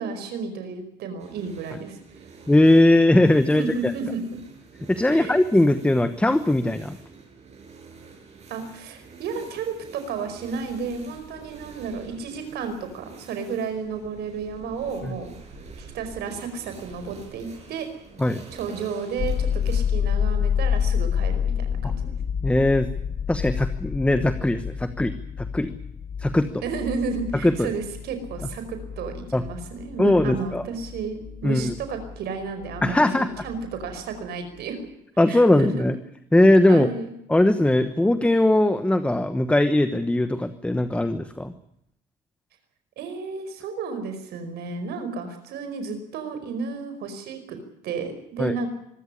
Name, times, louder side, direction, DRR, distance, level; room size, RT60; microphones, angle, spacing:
voice 1, 0.0-2.3 3.5-4.4 5.1-5.4 8.5-15.3 15.8-17.9 18.5-22.1 26.6-34.8 35.3-35.9 36.7-37.1 43.0-47.6 47.8-48.7, right 5 dB, 75° right, 8 dB, 5.0 m, -32 dB
sound 1, 1.2-19.8, right 4 dB, 40° right, 7.3 m, -47 dB
voice 2, 2.5-3.9 4.9-7.0 15.0-15.2 18.2-18.4 21.8-21.9 22.4-22.9 23.3-25.7 26.2-26.5 27.4-27.7 29.3-29.4 30.0-30.6 31.4-31.7 32.8-33.4 35.2-35.9 36.3-36.9 37.3-41.5 48.4-48.5, left 1 dB, 5° left, 11 dB, 1.1 m, -20 dB
sound 2, 19.2-33.0 33.3-34.2, left 8 dB, 40° left, 1.2 m, -29 dB
25.0 x 13.5 x 10.0 m, 0.78 s
cardioid pair, 110°, 17 cm